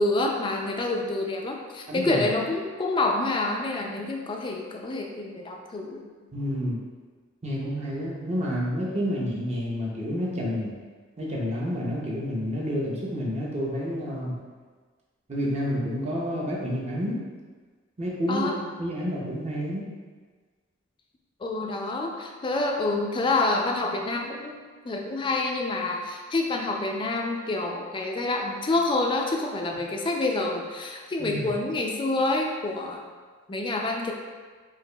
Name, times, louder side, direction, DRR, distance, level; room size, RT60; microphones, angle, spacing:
voice 1, 0.0-6.0 18.3-18.5 21.4-24.6 24.8-33.0 33.5-34.1, left 2 dB, 25° left, 1 dB, 0.3 m, -27 dB
voice 2, 1.9-2.2 6.3-6.8 7.4-10.7 11.2-14.4 15.3-17.2 18.0-18.5 18.8-19.8 31.2-31.5, equal, 35° right, -5 dB, 0.6 m, -29 dB
4.6 x 2.4 x 2.2 m, 1.4 s
head